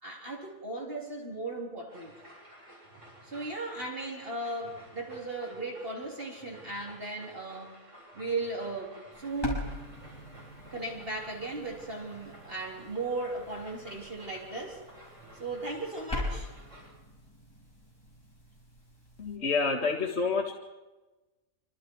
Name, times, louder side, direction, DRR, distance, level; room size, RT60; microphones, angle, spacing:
voice 1, 0.0-2.1 3.2-7.8 8.1-9.7 10.7-14.8 15.4-16.5, right 2 dB, 40° right, -1 dB, 3.8 m, -36 dB
sound 1, 1.9-16.9, right 1 dB, 55° right, 8.4 m, -53 dB
sound 2, 9.1-19.4, left 1 dB, 15° left, 6.7 m, -42 dB
voice 2, 19.2-20.5, left 4 dB, 45° left, 1 dB, 2.0 m, -28 dB
26.5 x 26.0 x 4.7 m, 1.1 s
omnidirectional pair, 1.5 m